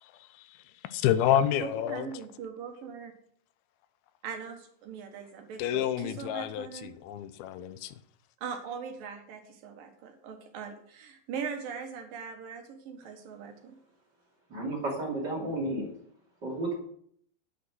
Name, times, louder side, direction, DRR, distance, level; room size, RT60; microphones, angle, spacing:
voice 1, 0.0-2.1 5.6-7.9, left 10 dB, 90° left, 2.7 m, -29 dB
voice 2, 1.6-3.1 4.2-6.9 8.4-13.8, right 6 dB, 70° right, 3.0 m, -40 dB
voice 3, 14.5-15.9 16.4-16.7, right 2 dB, 30° right, 2.9 m, -32 dB
10.0 x 8.5 x 6.3 m
omnidirectional pair, 4.2 m